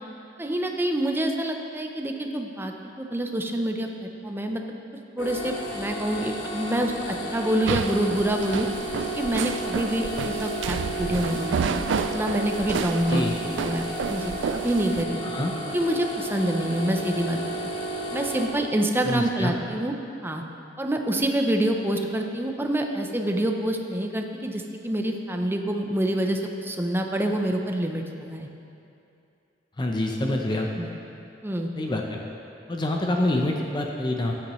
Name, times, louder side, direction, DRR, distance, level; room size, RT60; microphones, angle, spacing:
voice 1, 0.4-4.6 5.2-8.7 9.2-11.8 12.1-15.2 15.7-17.7 18.1-19.9 20.2-20.4 20.8-28.5 30.8-30.9 31.4-31.7, right 1 dB, 10° right, 3 dB, 0.6 m, -27 dB
sound 1, 5.2-18.5, right 1 dB, 85° left, 1.4 m, -33 dB
sound 2, 7.7-15.0, right 6 dB, 85° right, 0.3 m, -30 dB
voice 2, 15.2-15.5 19.0-19.5 29.8-30.7 31.8-32.2 32.7-34.3, left 1 dB, 25° left, 1 dB, 0.6 m, -26 dB
13.5 x 8.6 x 3.1 m, 2.7 s
head